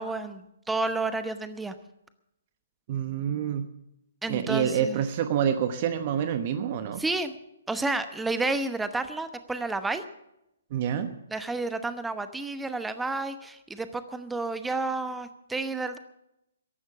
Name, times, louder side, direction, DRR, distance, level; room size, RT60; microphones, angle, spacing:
voice 1, 0.0-1.7 4.2-5.0 7.0-7.3 7.7-10.0 11.3-16.0, right 3 dB, 5° right, 10 dB, 0.9 m, -31 dB
voice 2, 2.9-3.7 4.3-7.0 10.7-11.2, right 8 dB, 40° right, 10 dB, 1.0 m, -27 dB
15.0 x 11.0 x 7.1 m, 0.85 s
figure-of-eight pair, 130°, 0 cm